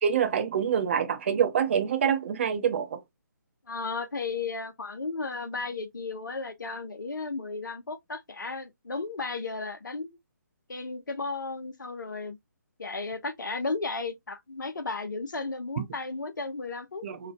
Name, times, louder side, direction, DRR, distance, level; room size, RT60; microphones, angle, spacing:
voice 1, 0.0-3.0 15.8-15.9 17.0-17.3, right 8 dB, 35° right, 0.7 m, -26 dB
voice 2, 3.7-10.2 10.7-12.4 12.8-17.1, left 3 dB, 70° left, 0.6 m, -34 dB
4.3 x 2.2 x 2.3 m
figure-of-eight pair, 140°, 11 cm